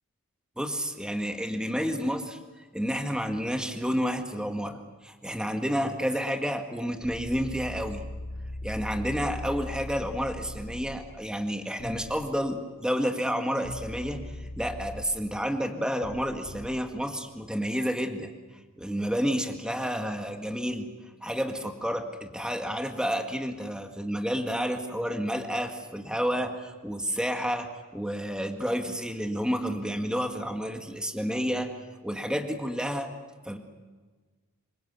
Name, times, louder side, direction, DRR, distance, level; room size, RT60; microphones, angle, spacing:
voice 1, 0.6-8.0 8.6-18.3 18.8-20.9 21.2-31.7 32.0-33.1 33.4-33.6, equal, 5° right, 4 dB, 1.9 m, -30 dB
sound 1, 7.0-10.8 11.8-12.1 13.6-15.0 16.0-16.7, left 1 dB, 65° left, 2.9 m, -39 dB
26.5 x 23.5 x 8.2 m, 1.3 s
head